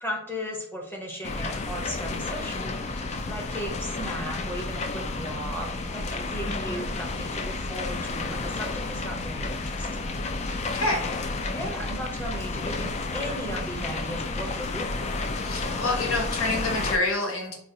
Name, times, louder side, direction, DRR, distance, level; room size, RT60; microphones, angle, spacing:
voice 1, 0.0-10.1 11.5-14.8, equal, 10° left, 0 dB, 0.7 m, -36 dB
sound 1, 1.2-17.0, left 3 dB, 30° left, 0.3 m, -31 dB
voice 2, 6.4-6.9 10.7-11.2 15.4-17.5, left 2 dB, 75° left, 1 dB, 1.0 m, -28 dB
3.9 x 2.3 x 2.7 m, 0.73 s
head